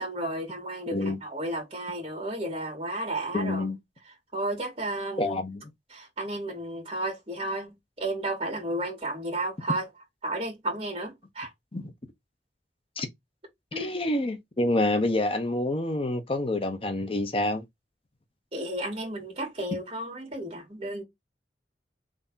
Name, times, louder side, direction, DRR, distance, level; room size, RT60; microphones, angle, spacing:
voice 1, 0.0-3.6 4.3-5.4 5.9-9.9 10.2-11.5 13.7-13.9 18.5-21.0, right 1 dB, 35° right, 2.4 m, -33 dB
voice 2, 3.3-3.8 5.2-5.7 11.7-11.9 13.0-13.1 13.8-17.6, left 1 dB, 30° left, 0.8 m, -27 dB
3.6 x 3.4 x 4.0 m
head